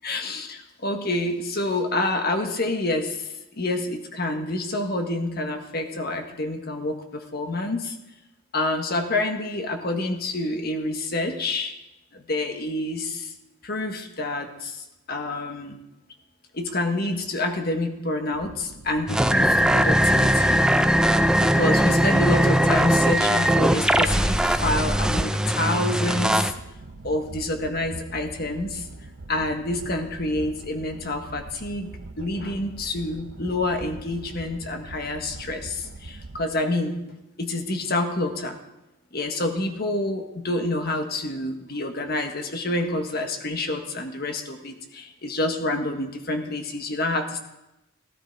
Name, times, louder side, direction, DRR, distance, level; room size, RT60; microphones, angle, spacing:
voice 1, 0.0-3.3 3.6-7.9 8.5-11.7 12.1-13.3 13.6-15.8 16.5-20.6 21.4-26.5 27.0-28.8 29.3-38.6 39.1-47.4, left 2 dB, 50° left, 5 dB, 1.4 m, -28 dB
sound 1, 18.3-36.5, right 2 dB, 70° right, 0.8 m, -42 dB
sound 2, 19.1-26.5, equal, 5° right, 0.4 m, -20 dB
15.0 x 13.5 x 4.5 m, 0.96 s
head